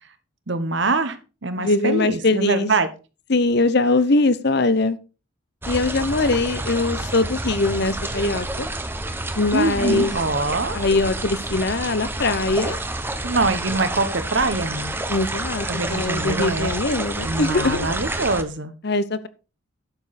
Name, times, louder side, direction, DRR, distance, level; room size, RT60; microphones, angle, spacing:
voice 1, 0.5-2.9 9.5-10.8 13.2-14.9 15.7-16.7 17.2-18.7, right 3 dB, 55° right, 1.2 m, -24 dB
voice 2, 1.6-2.7 3.3-5.0 5.7-8.7 9.4-10.1 10.7-12.8 15.1-17.9 18.8-19.3, left 3 dB, 50° left, 0.8 m, -21 dB
sound 1, 5.6-18.4, right 2 dB, 10° right, 0.9 m, -29 dB
11.5 x 7.2 x 4.2 m
head